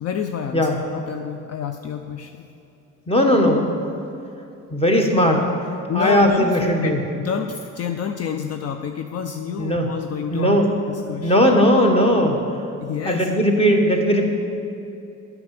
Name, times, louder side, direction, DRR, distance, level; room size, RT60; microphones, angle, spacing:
voice 1, 0.0-2.5 5.9-11.4 12.8-13.3, left 7 dB, 55° left, 7 dB, 0.5 m, -29 dB
voice 2, 3.1-3.7 4.7-5.5 5.9-7.0 9.6-9.9 10.3-10.7 11.2-12.4 13.0-14.3, equal, 20° left, 2 dB, 1.4 m, -17 dB
8.5 x 6.0 x 7.6 m, 2.7 s
cardioid pair, 90°, 30 cm